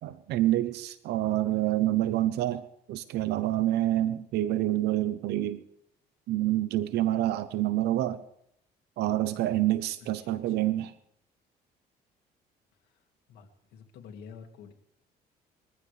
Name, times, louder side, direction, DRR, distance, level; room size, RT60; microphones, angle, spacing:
voice 1, 0.0-5.6 6.3-8.2 9.0-10.9, right 14 dB, 80° right, 14 dB, 0.8 m, -27 dB
voice 2, 13.3-14.7, left 6 dB, 75° left, 2 dB, 2.2 m, -48 dB
22.0 x 15.0 x 3.3 m, 0.75 s
cardioid pair, 110°, 17 cm